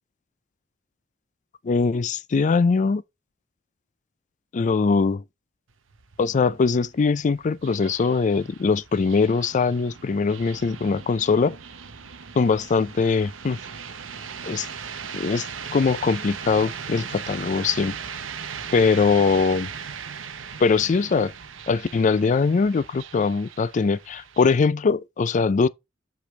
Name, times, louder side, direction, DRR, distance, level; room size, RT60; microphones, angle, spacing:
voice 1, 1.6-3.0 4.5-5.2 6.2-11.6 12.4-13.6 14.4-14.7 15.1-15.5 15.7-18.0 18.7-19.7 20.6-21.3 21.7-25.7, left 4 dB, 40° left, 0.4 m, -21 dB
sound 1, 5.7-24.7, right 7 dB, 85° right, 0.9 m, -38 dB
7.8 x 5.1 x 3.2 m
head